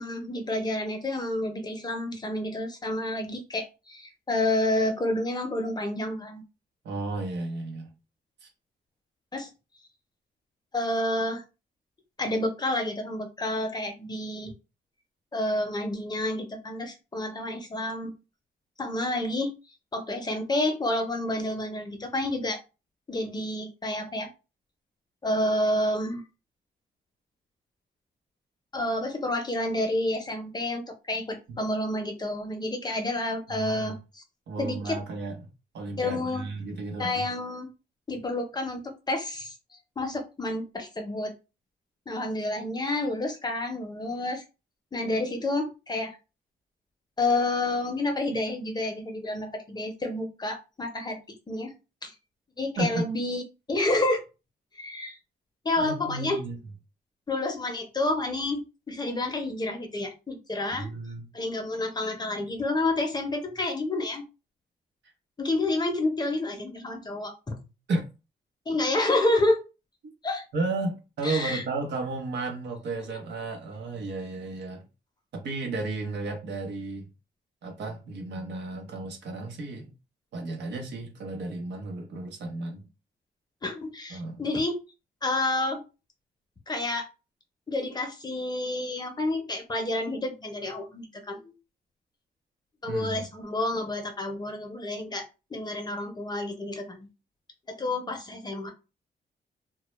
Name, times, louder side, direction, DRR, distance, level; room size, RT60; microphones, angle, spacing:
voice 1, 0.0-6.4 9.3-9.5 10.7-11.4 12.2-14.5 15.3-18.1 18.8-19.5 19.9-22.6 23.1-24.3 25.2-26.2 28.7-34.2 34.6-35.0 36.0-36.4 37.0-37.7 38.1-38.8 39.1-39.5 40.0-41.3 42.1-44.4 44.9-46.1 47.2-51.2 51.5-51.7 52.0-52.1 52.6-53.4 53.7-54.2 54.7-55.2 55.6-56.4 57.3-60.9 61.3-64.2 65.4-67.6 68.7-69.6 70.2-70.4 71.2-71.6 73.1-73.2 83.6-84.8 85.2-85.8 86.7-87.1 87.7-91.5 92.8-97.1 97.7-98.7, left 2 dB, 25° left, 0.6 m, -29 dB
voice 2, 6.8-7.9 8.4-8.5 31.5-31.6 33.5-34.0 34.5-35.5 35.7-37.3 52.8-53.1 55.8-56.6 60.7-61.3 67.9-68.0 70.5-74.8 75.3-77.1 77.6-79.9 80.3-82.8 84.1-84.5 92.9-93.3, right 3 dB, 85° right, 0.8 m, -33 dB
2.2 x 2.1 x 3.0 m
cardioid pair, 105°, 17 cm